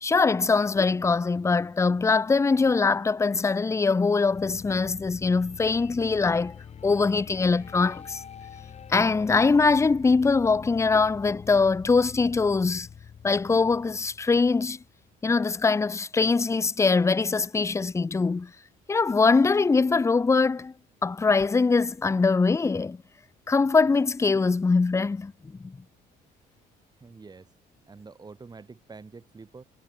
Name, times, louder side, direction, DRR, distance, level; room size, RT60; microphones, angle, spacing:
voice 1, 0.0-8.2 8.9-12.9 13.2-14.8 15.2-18.5 18.9-20.7 21.0-23.0 23.5-25.8, left 4 dB, 15° left, 0.8 m, -22 dB
sound 1, 4.3-15.2, left 7 dB, 40° left, 2.3 m, -45 dB
voice 2, 27.0-27.5 27.9-29.6, right 4 dB, 25° right, 6.4 m, -46 dB
cardioid pair, 110°, 17 cm